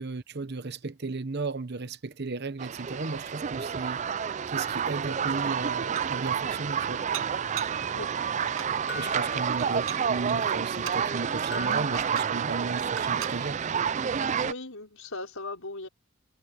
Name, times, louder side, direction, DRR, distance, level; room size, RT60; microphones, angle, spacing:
voice 1, 0.0-4.0 4.5-7.0 8.9-13.6, right 3 dB, 50° right, 1.0 m, -35 dB
sound 1, 2.6-14.5, right 7 dB, 35° right, 0.3 m, -29 dB
Dishes pots and pans, 5.1-5.2 5.6-6.3 7.1-7.8 8.3-8.8 9.6-11.1 11.7-12.4 12.8-13.4, right 9 dB, 85° right, 6.4 m, -40 dB
sound 2, 8.9-10.4 11.5-13.0, left 1 dB, 50° left, 3.7 m, -41 dB
voice 2, 9.3-9.8 14.4-15.9, left 2 dB, 80° left, 5.4 m, -39 dB
head